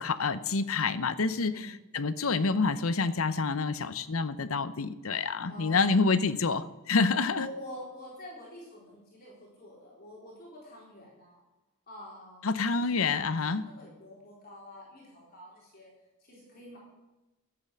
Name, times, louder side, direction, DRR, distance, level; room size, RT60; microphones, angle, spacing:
voice 1, 0.0-7.5 12.4-13.7, left 4 dB, 70° left, 14 dB, 0.8 m, -28 dB
voice 2, 5.5-6.0 7.3-11.4 11.9-12.4 12.7-15.9 16.2-16.8, left 1 dB, 45° left, -4 dB, 3.7 m, -46 dB
13.0 x 7.9 x 7.4 m, 1.1 s
head